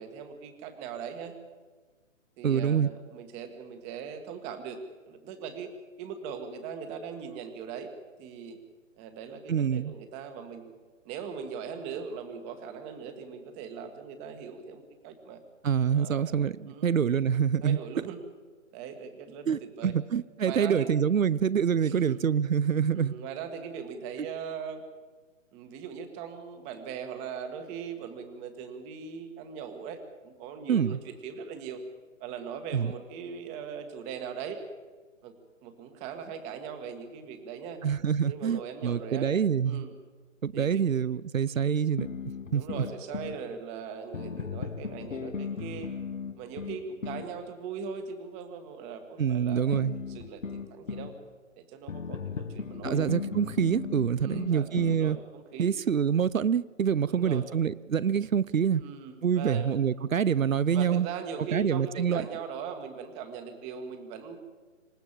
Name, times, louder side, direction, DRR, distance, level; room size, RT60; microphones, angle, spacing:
voice 1, 0.0-1.3 2.4-4.8 5.0-5.7 6.0-7.9 8.2-8.6 9.0-10.7 11.0-15.4 15.9-17.0 17.6-18.2 18.7-19.9 20.4-20.9 21.8-22.2 22.9-24.8 25.5-31.8 32.2-34.6 35.2-35.3 35.6-37.8 38.3-39.3 39.6-39.9 40.5-40.8 42.5-45.9 46.4-51.1 51.6-53.0 54.2-55.7 57.1-57.5 58.8-59.7 60.7-64.5, right 6 dB, 15° right, 7 dB, 1.8 m, -40 dB
voice 2, 2.4-2.9 9.5-9.9 15.6-17.8 19.5-23.1 30.7-31.0 32.7-32.9 37.8-39.8 40.4-42.1 42.5-42.6 49.2-49.9 52.8-55.2 55.6-58.8 59.2-61.1 61.5-62.3, right 7 dB, 85° right, 19 dB, 0.8 m, -26 dB
sound 1, 42.0-43.4 44.1-47.3 49.7-51.1 51.9-55.1, left 5 dB, 75° left, 2.4 m, -37 dB
27.0 x 15.5 x 7.5 m, 1.4 s
hypercardioid pair, 155°, 39 cm